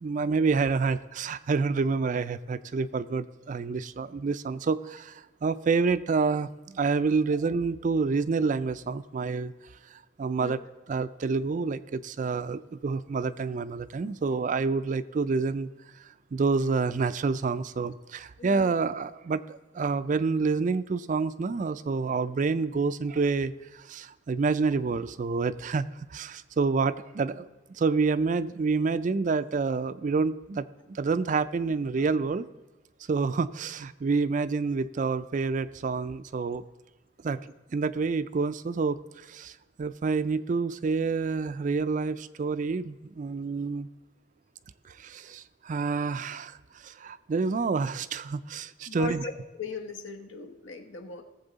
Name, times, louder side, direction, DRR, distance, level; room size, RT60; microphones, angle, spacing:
voice 1, 0.0-9.5 9.9-10.6 10.9-15.7 16.0-32.5 33.1-36.6 37.2-37.4 37.7-43.9 44.9-49.2, right 4 dB, 40° right, 14 dB, 0.3 m, -28 dB
voice 2, 18.4-18.7 27.3-27.4 48.9-49.3 49.6-51.2, left 5 dB, 70° left, 5 dB, 1.1 m, -38 dB
18.0 x 7.4 x 3.9 m, 1.1 s
head